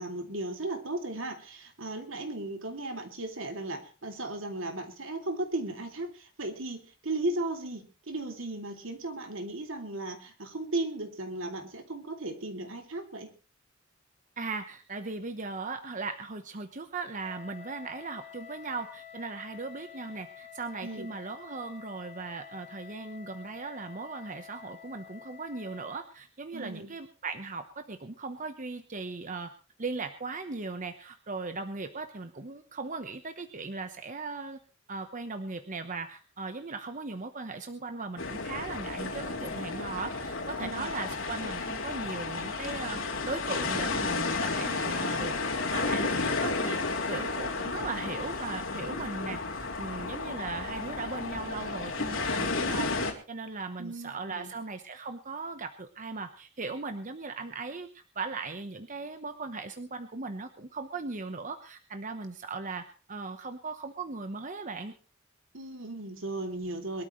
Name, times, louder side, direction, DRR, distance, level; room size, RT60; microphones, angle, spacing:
voice 1, 0.0-13.3 20.8-21.1 26.5-26.9 40.6-40.9 53.8-54.5 65.5-67.0, right 2 dB, 75° right, 4 dB, 2.9 m, -36 dB
voice 2, 14.4-29.5 29.8-34.6 34.9-46.8 47.1-52.9 53.3-64.9, right 3 dB, 40° right, 8 dB, 1.1 m, -38 dB
Wind instrument woodwind instrument, 17.2-26.1, left 9 dB, 35° left, 1.7 m, -49 dB
sound 1, 38.2-53.1, left 3 dB, 80° left, 3.2 m, -32 dB
23.0 x 13.0 x 3.2 m, 0.34 s
head